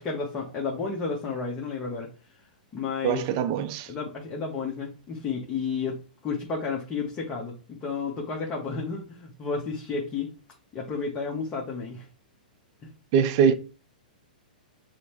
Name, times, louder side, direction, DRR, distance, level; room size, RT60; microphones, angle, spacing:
voice 1, 0.0-2.1 2.7-3.3 3.9-10.3 10.7-12.1 12.8-12.9, left 5 dB, 25° left, 0.9 m, -32 dB
voice 2, 3.0-3.9 13.1-13.5, right 7 dB, 45° right, 0.5 m, -22 dB
6.2 x 2.2 x 2.9 m
hypercardioid pair, 125°, 5 cm